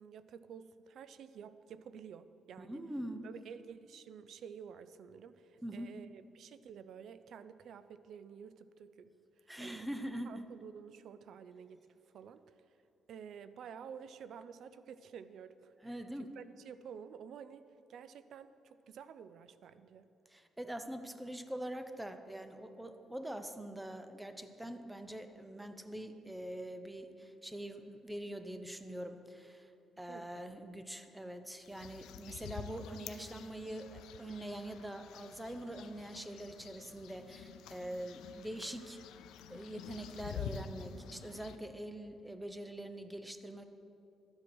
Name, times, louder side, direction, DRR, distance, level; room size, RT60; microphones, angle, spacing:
voice 1, 0.0-2.9 3.2-9.1 9.4-9.9 10.3-12.6 13.1-17.6 17.9-20.1 30.1-30.4, right 7 dB, 70° right, 13 dB, 0.4 m, -51 dB
voice 2, 2.6-3.3 5.6-5.9 9.5-10.4 15.8-16.3 20.3-29.7 30.0-39.0 39.5-43.6, right 1 dB, 10° right, 8 dB, 0.8 m, -44 dB
sound 1, 31.6-41.6, left 8 dB, 85° left, 0.5 m, -48 dB
12.0 x 7.6 x 6.2 m, 2.7 s
cardioid pair, 90°, 0 cm